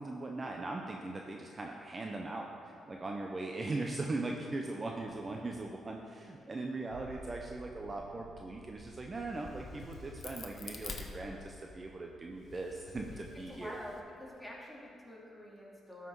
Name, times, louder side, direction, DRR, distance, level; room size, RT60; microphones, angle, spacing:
voice 1, 0.0-13.8, right 2 dB, 30° right, 1 dB, 0.8 m, -40 dB
sound 1, 5.8-6.1 6.9-13.7, right 2 dB, 70° right, 1.1 m, -56 dB
Crack, 9.2-11.8 12.3-14.0, left 4 dB, 50° left, 1.0 m, -47 dB
voice 2, 13.5-16.1, left 1 dB, 5° left, -5 dB, 2.6 m, -47 dB
12.5 x 5.9 x 4.7 m, 2.5 s
cardioid pair, 85°, 0 cm